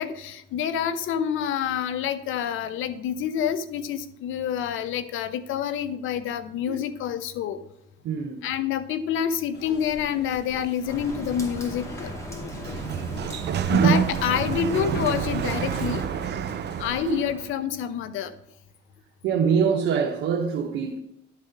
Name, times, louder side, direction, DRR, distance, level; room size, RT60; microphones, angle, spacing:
voice 1, 0.0-7.6 8.4-12.1 13.7-16.1 16.8-18.3, left 9 dB, 85° left, 0.8 m, -27 dB
voice 2, 8.0-8.5 13.3-14.0 17.0-17.2 19.2-21.0, right 6 dB, 85° right, 1.0 m, -25 dB
sound 1, 9.5-17.1, left 4 dB, 55° left, 1.5 m, -42 dB
Rain, 10.9-16.1, equal, 15° left, 2.5 m, -37 dB
Sliding door, 12.3-17.5, right 9 dB, 60° right, 0.5 m, -28 dB
11.5 x 4.2 x 6.4 m
cardioid pair, 90°, 20 cm